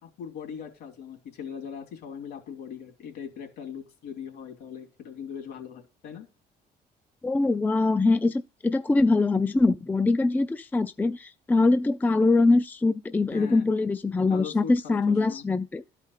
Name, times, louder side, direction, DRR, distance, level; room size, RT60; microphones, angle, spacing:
voice 1, 0.0-6.3 13.3-13.7 14.3-15.5, left 7 dB, 75° left, 3.0 m, -40 dB
voice 2, 7.2-15.8, left 3 dB, 10° left, 0.4 m, -23 dB
12.5 x 5.0 x 5.7 m
cardioid pair, 110°, 17 cm